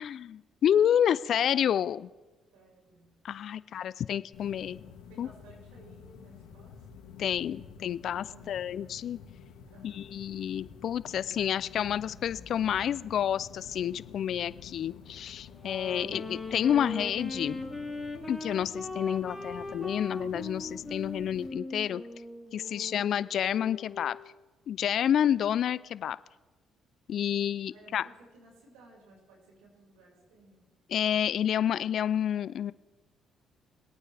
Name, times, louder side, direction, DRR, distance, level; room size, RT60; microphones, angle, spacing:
voice 1, 0.0-2.1 3.2-4.8 5.2-5.3 7.2-9.2 9.8-17.6 18.3-22.0 22.5-24.2 24.7-26.2 27.1-28.0 30.9-32.7, left 9 dB, 65° left, 17 dB, 0.4 m, -29 dB
voice 2, 2.5-3.1 5.1-6.9 8.3-8.8 9.7-10.2 22.6-22.9 27.7-30.7, right 2 dB, 90° right, -3 dB, 5.4 m, -57 dB
sound 1, 4.3-21.5, left 7 dB, 85° left, 1.8 m, -50 dB
Wind instrument woodwind instrument, 15.5-24.2, left 2 dB, 10° left, 2.7 m, -40 dB
24.0 x 9.0 x 3.4 m, 1.2 s
supercardioid pair, 65°, 0 cm